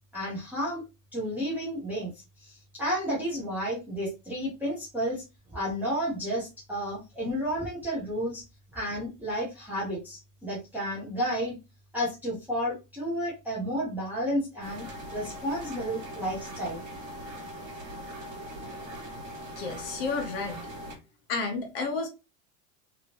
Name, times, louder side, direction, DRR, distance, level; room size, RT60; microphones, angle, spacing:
voice 1, 0.1-0.8 1.1-2.1 2.4-5.2 5.5-8.4 8.7-11.6 11.9-14.8 15.1-16.8, equal, 5° right, 0.5 m, -31 dB
sound 1, 14.6-21.0, equal, 40° right, 1.5 m, -41 dB
voice 2, 19.6-20.6 21.3-22.1, left 4 dB, 45° left, 0.9 m, -31 dB
3.0 x 2.6 x 2.8 m
supercardioid pair, 180°, 39 cm